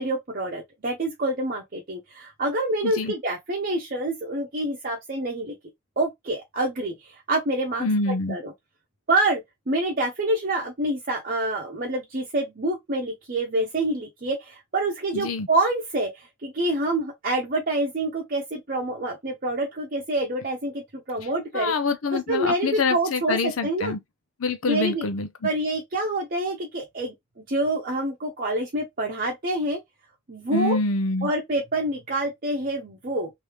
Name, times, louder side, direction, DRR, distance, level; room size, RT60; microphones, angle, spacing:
voice 1, 0.0-5.5 6.0-8.5 9.1-21.7 22.1-23.9 24.7-25.0 25.4-29.8 30.3-30.8 31.2-33.3, right 2 dB, 45° right, 0.8 m, -27 dB
voice 2, 2.8-3.1 7.8-8.4 15.1-15.5 21.5-24.0 24.4-25.5 30.5-31.3, left 3 dB, 75° left, 0.6 m, -26 dB
3.3 x 2.7 x 3.2 m
head